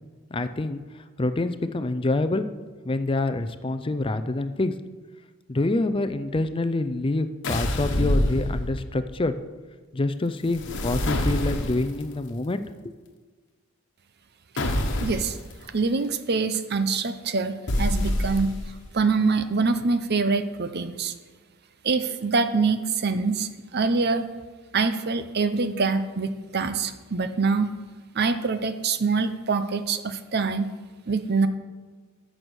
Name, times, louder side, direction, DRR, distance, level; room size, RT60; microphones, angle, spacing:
voice 1, 0.3-0.8 1.2-2.5 2.8-4.7 5.5-9.3 9.9-13.0, left 2 dB, 25° left, 11 dB, 0.5 m, -26 dB
sound 1, 7.4-9.1 10.5-12.0 14.6-15.4 17.7-18.8, left 1 dB, 60° left, 1.3 m, -26 dB
voice 2, 15.0-15.4 15.7-18.5 18.9-21.1 21.8-24.3 24.7-27.7 28.1-30.7 31.1-31.5, right 4 dB, 50° right, 11 dB, 0.7 m, -25 dB
14.0 x 6.3 x 6.3 m, 1.4 s
head